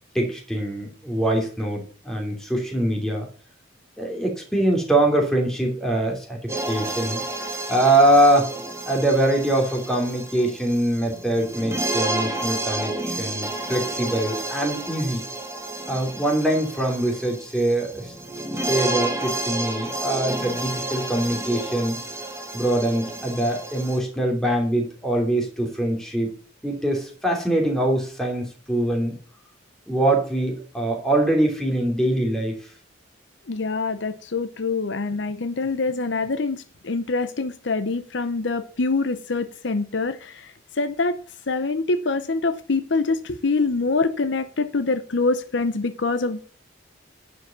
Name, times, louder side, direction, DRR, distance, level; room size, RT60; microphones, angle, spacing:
voice 1, 0.1-3.3 4.0-7.2 7.7-8.5 8.8-15.2 15.8-18.1 18.5-22.0 22.5-26.3 26.6-29.2 29.9-32.6, right 1 dB, 5° left, 0 dB, 2.8 m, -23 dB
sound 1, 6.5-24.0, right 2 dB, 15° right, 1.2 m, -30 dB
voice 2, 33.5-46.4, left 3 dB, 60° left, 10 dB, 0.7 m, -25 dB
10.5 x 5.2 x 6.9 m, 0.42 s
head